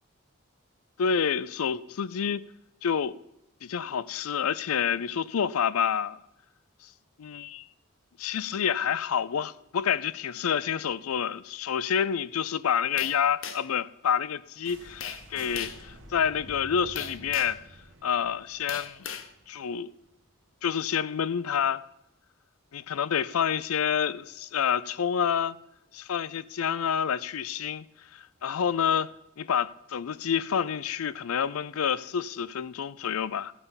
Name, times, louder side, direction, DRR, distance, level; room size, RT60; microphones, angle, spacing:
voice 1, 1.0-2.4 2.8-3.1 3.6-6.2 7.2-7.7 8.2-17.6 18.0-19.1 19.5-19.9 20.6-21.8 22.7-25.6 25.9-27.8 28.1-29.1 29.4-33.5, left 8 dB, 85° left, 0.4 m, -28 dB
sound 1, 13.0-13.8 15.0-15.2 15.6-15.9 17.0-17.6 18.7-19.3, left 7 dB, 65° left, 0.8 m, -38 dB
sound 2, 14.6-20.5, right 1 dB, 60° right, 1.3 m, -50 dB
15.0 x 5.4 x 7.0 m
head